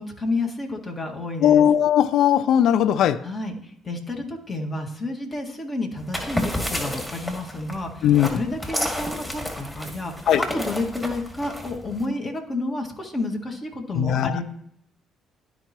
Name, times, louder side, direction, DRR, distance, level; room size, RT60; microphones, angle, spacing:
voice 1, 0.0-1.7 3.2-14.4, left 2 dB, 40° left, 1.8 m, -30 dB
voice 2, 1.4-3.2 8.0-8.3 10.3-10.4 14.0-14.4, left 10 dB, 65° left, 0.4 m, -18 dB
sound 1, 6.0-12.0, equal, 10° left, 2.1 m, -31 dB
12.5 x 4.7 x 2.9 m
hypercardioid pair, 50°, 0 cm